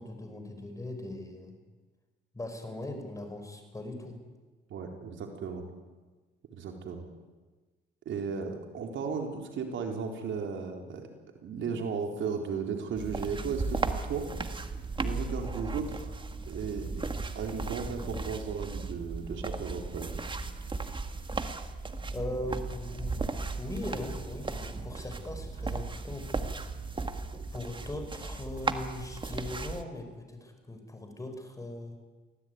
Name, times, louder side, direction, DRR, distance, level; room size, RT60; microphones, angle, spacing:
voice 1, 0.0-1.6 2.3-4.2 22.1-27.0 27.5-32.0, left 1 dB, 15° left, 6 dB, 5.7 m, -40 dB
voice 2, 4.7-5.6 6.5-7.0 8.1-11.1 11.4-14.3 15.0-16.1 16.5-16.9 17.3-20.1, right 5 dB, 70° right, 3 dB, 4.0 m, -35 dB
sound 1, 13.0-29.8, right 3 dB, 25° right, 1.8 m, -36 dB
24.0 x 17.5 x 9.5 m, 1.3 s
cardioid pair, 90°, 20 cm